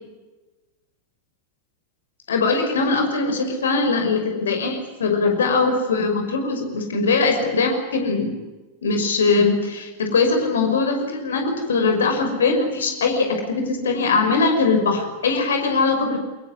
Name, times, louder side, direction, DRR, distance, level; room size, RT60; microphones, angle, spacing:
voice 1, 2.3-8.3 8.8-16.2, left 4 dB, 65° left, 5 dB, 5.8 m, -21 dB
24.0 x 21.0 x 9.6 m, 1.2 s
figure-of-eight pair, 90°, 0 cm